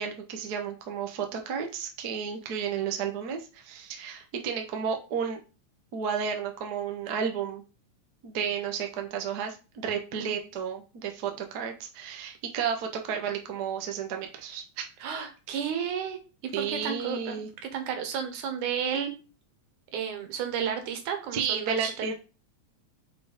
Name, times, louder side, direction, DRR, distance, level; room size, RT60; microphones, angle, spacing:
voice 1, 0.0-5.4 5.9-7.6 8.2-14.8 16.5-17.5 21.3-22.1, right 7 dB, 70° right, 3 dB, 0.9 m, -32 dB
voice 2, 15.0-17.4 17.6-19.1 19.9-22.1, right 7 dB, 85° right, 6 dB, 2.6 m, -32 dB
5.2 x 4.3 x 4.9 m, 0.32 s
omnidirectional pair, 3.4 m